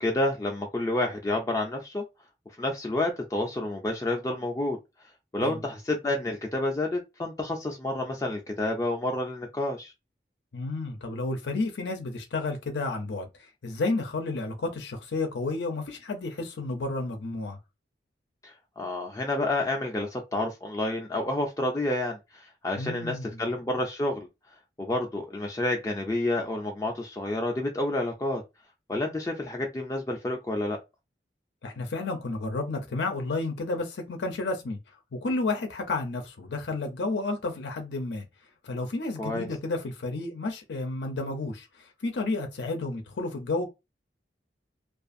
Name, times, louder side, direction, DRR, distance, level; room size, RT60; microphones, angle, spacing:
voice 1, 0.0-2.0 2.6-4.8 5.3-9.9 18.4-24.3 24.8-28.4 28.9-30.8 39.2-39.5, left 1 dB, 20° left, 0.3 m, -29 dB
voice 2, 10.5-17.6 22.8-23.4 31.6-34.8 35.1-38.2 38.6-43.7, left 3 dB, 80° left, 0.5 m, -31 dB
2.4 x 2.4 x 2.5 m
head